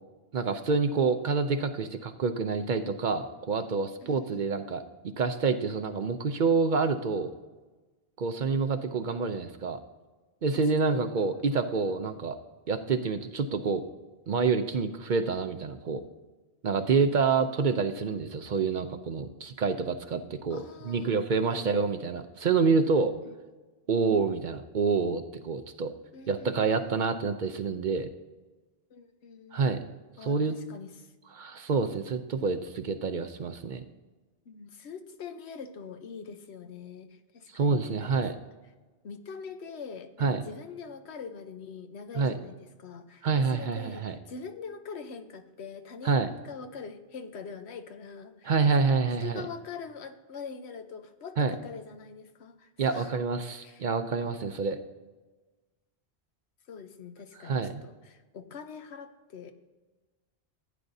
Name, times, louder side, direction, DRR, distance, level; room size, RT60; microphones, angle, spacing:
voice 1, 0.3-7.3 8.2-9.8 10.4-12.4 12.7-13.8 14.3-16.0 16.6-23.1 23.9-25.9 26.3-28.1 29.5-29.8 30.2-30.6 31.4-33.8 37.5-38.4 40.2-40.4 42.1-42.3 43.2-44.2 46.0-46.3 48.4-49.5 51.4-51.5 52.8-54.8 57.4-57.8, right 4 dB, 55° right, 9 dB, 0.6 m, -27 dB
voice 2, 4.0-4.5 10.5-11.0 17.4-17.8 20.5-21.2 21.5-21.6 23.2-23.4 26.1-27.1 28.9-29.9 30.2-31.1 34.5-38.2 39.0-48.9 49.2-53.1 53.6-53.8 56.7-59.5, left 5 dB, 80° left, 8 dB, 1.1 m, -44 dB
15.0 x 9.3 x 2.7 m, 1.2 s
omnidirectional pair, 1.1 m